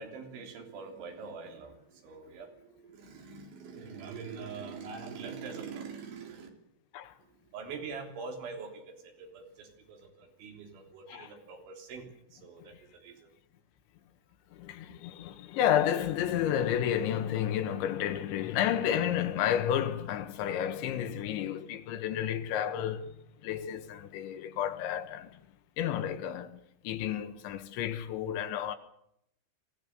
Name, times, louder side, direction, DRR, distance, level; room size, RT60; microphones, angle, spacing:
voice 1, 0.0-6.5 7.2-13.3 14.9-15.0, right 5 dB, 85° right, 5.7 m, -44 dB
voice 2, 14.5-23.1 23.4-25.4 25.8-26.6 26.8-28.8, left 10 dB, 80° left, 3.7 m, -31 dB
24.5 x 16.0 x 8.0 m
omnidirectional pair, 5.3 m